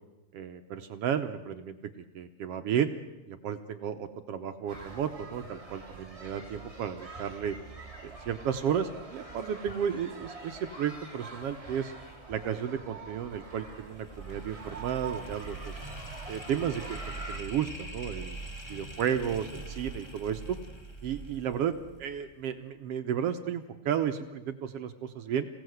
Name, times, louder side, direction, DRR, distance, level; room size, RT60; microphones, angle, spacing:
voice 1, 0.3-2.9 3.3-7.6 8.0-11.9 12.3-15.7 16.3-18.4 18.7-20.6 21.0-25.5, right 8 dB, 65° right, 8 dB, 1.7 m, -33 dB
sound 1, 4.7-17.4, right 3 dB, 10° right, 2.3 m, -45 dB
sound 2, 13.2-22.3, right 2 dB, 15° left, 0.8 m, -43 dB
26.5 x 17.0 x 7.9 m, 1.0 s
omnidirectional pair, 3.4 m